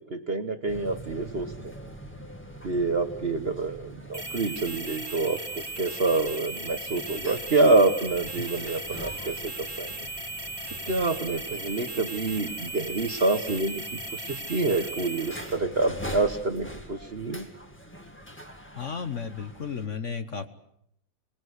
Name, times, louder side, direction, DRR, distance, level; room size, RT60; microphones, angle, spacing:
voice 1, 0.0-1.7 2.6-9.9 10.9-17.5, right 3 dB, 40° right, 9 dB, 1.1 m, -27 dB
sound 1, 0.7-19.9, equal, 5° left, 1.9 m, -44 dB
sound 2, 4.1-15.6, right 2 dB, 15° right, 1.6 m, -37 dB
voice 2, 18.7-20.5, left 6 dB, 45° left, 9 dB, 1.3 m, -33 dB
25.5 x 20.0 x 8.0 m, 0.75 s
omnidirectional pair, 2.0 m